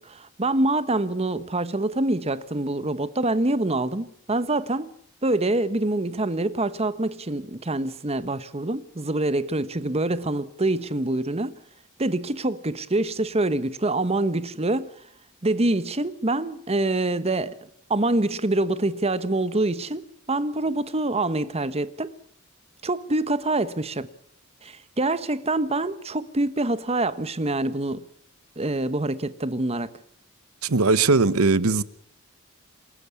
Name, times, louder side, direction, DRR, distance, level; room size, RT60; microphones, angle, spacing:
voice 1, 0.0-4.9 5.2-11.5 12.0-14.9 15.4-17.6 17.9-22.1 22.8-24.1 24.6-28.0 28.6-29.9, right 2 dB, 30° right, 1.1 m, -25 dB
voice 2, 30.6-31.8, right 3 dB, 90° right, 1.0 m, -19 dB
27.5 x 13.0 x 8.4 m
head